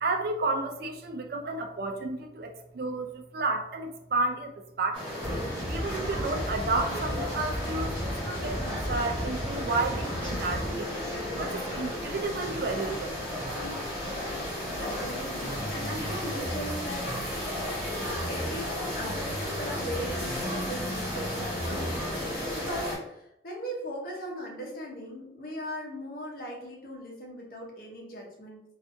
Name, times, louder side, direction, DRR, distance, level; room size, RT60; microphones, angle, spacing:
voice 1, 0.0-5.2 5.7-10.9 11.4-13.2 14.1-14.2, right 3 dB, 50° right, 4 dB, 0.3 m, -32 dB
sound 1, 4.9-23.0, left 1 dB, 5° left, 1.0 m, -34 dB
sound 2, 5.2-10.7, equal, 30° left, 1.0 m, -35 dB
voice 2, 14.5-17.3 18.0-22.1 22.5-28.6, equal, 50° left, -1 dB, 0.7 m, -39 dB
sound 3, 15.6-18.6 19.0-22.0, equal, 10° right, 0.7 m, -39 dB
2.5 x 2.4 x 2.5 m, 0.83 s
head